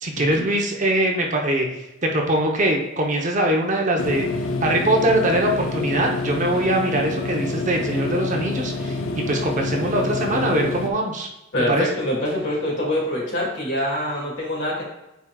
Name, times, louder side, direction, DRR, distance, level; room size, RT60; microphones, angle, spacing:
voice 1, 0.0-4.3 4.6-11.3 11.7-11.9, right 1 dB, 35° right, 1 dB, 0.8 m, -22 dB
sound 1, 4.0-10.9, left 3 dB, 85° left, 0.7 m, -27 dB
voice 2, 11.5-14.8, left 1 dB, 60° left, -3 dB, 2.1 m, -25 dB
9.2 x 4.8 x 2.3 m, 0.93 s
head